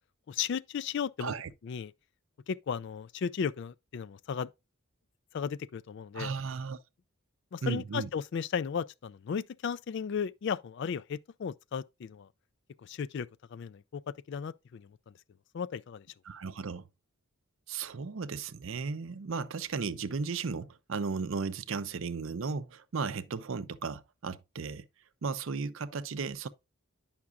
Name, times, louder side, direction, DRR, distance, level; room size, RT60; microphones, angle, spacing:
voice 1, 0.3-1.3 1.6-1.9 2.5-4.5 5.3-6.3 7.5-12.3 12.8-14.0 14.3-15.0 15.5-16.1, left 7 dB, 55° left, 0.3 m, -35 dB
voice 2, 6.1-6.8 7.6-8.1 16.3-16.9 17.7-24.9 25.2-26.5, right 5 dB, 65° right, 0.5 m, -35 dB
9.7 x 5.8 x 2.3 m
head